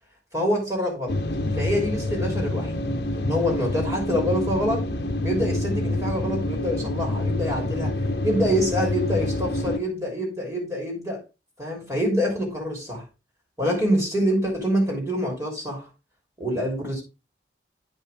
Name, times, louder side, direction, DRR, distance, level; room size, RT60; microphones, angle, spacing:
voice 1, 0.3-1.2 1.6-2.9 3.1-4.8 5.2-7.9 8.2-11.2 11.6-13.1 13.6-15.9 16.4-17.0, equal, 15° right, 3.3 m, -26 dB
sound 1, 1.1-9.8, left 1 dB, 60° left, 0.8 m, -27 dB
9.3 x 5.3 x 3.5 m
head